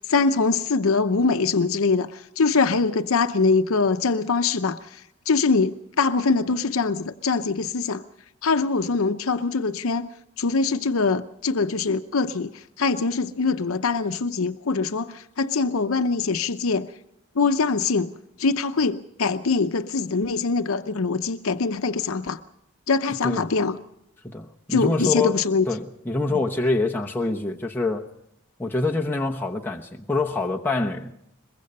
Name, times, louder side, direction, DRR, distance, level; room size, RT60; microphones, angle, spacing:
voice 1, 0.0-8.0 8.4-10.1 10.4-16.9 17.4-18.1 18.4-22.4 22.9-23.8 24.7-25.7, left 4 dB, 70° left, 0.7 m, -23 dB
voice 2, 24.3-25.4 25.7-28.0 28.6-31.1, left 3 dB, 10° left, 0.9 m, -25 dB
22.5 x 21.5 x 5.4 m
head